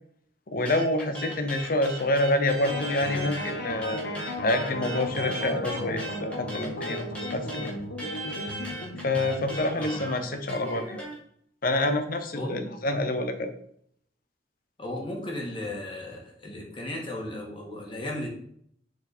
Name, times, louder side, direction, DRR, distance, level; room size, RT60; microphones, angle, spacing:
voice 1, 0.5-4.0 4.4-7.0 7.3-7.7 9.0-11.0 11.6-13.5, left 1 dB, 55° left, 8 dB, 0.9 m, -27 dB
sound 1, 0.6-3.5 3.8-11.1, right 1 dB, 5° left, 2.0 m, -38 dB
sound 2, 2.6-9.6, left 1 dB, 85° left, 1.5 m, -35 dB
voice 2, 9.7-10.1 12.4-12.6 14.8-18.3, left 1 dB, 30° left, -2 dB, 2.1 m, -35 dB
6.8 x 4.7 x 4.4 m, 0.66 s
head